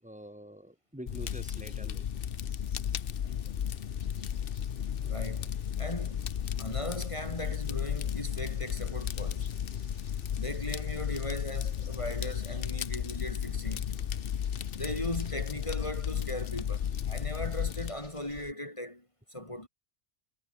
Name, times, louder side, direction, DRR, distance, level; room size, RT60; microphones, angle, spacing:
voice 1, 0.0-2.1 3.8-4.3 4.9-5.2 7.5-7.6, equal, 5° right, 5.9 m, -47 dB
Fire, 1.1-17.9, left 9 dB, 55° left, 0.9 m, -34 dB
sound 1, 1.2-18.5, left 3 dB, 90° left, 3.3 m, -53 dB
voice 2, 5.1-6.3 6.6-9.5 10.4-13.9 14.7-19.0 19.3-19.7, left 1 dB, 25° left, 3.5 m, -38 dB
omnidirectional pair, 1.2 m